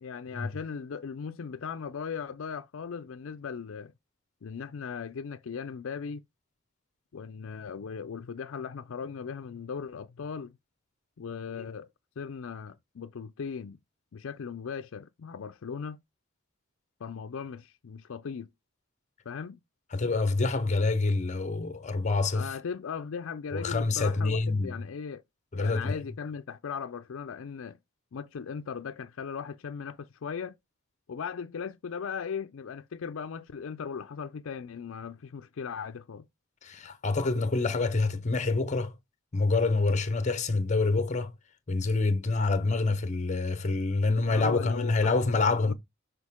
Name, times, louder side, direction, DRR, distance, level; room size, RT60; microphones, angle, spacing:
voice 1, 0.0-3.9 4.4-6.2 7.1-10.6 11.2-11.9 12.2-13.8 14.1-16.0 17.0-18.5 19.3-19.6 22.3-25.2 25.5-27.8 28.1-30.6 31.1-36.3 44.3-45.7, left 6 dB, 70° left, 0.4 m, -38 dB
voice 2, 19.9-22.5 23.5-24.7 25.5-26.0 36.6-38.9 39.3-41.3 41.7-45.7, left 3 dB, 35° left, 0.9 m, -27 dB
6.3 x 5.2 x 3.6 m
head